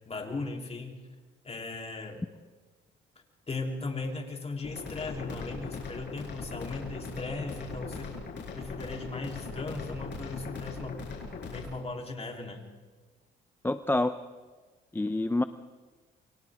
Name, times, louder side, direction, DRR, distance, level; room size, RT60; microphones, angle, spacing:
voice 1, 0.1-1.0 1.4-2.2 3.5-8.1 8.5-11.1 11.5-12.7, left 3 dB, 30° left, 2 dB, 3.7 m, -37 dB
sound 1, 4.6-11.6, left 4 dB, 60° left, 6.9 m, -40 dB
voice 2, 13.6-14.1 14.9-15.4, left 2 dB, 10° left, 10 dB, 0.7 m, -27 dB
29.0 x 24.0 x 3.7 m, 1.3 s
cardioid pair, 90°, 20 cm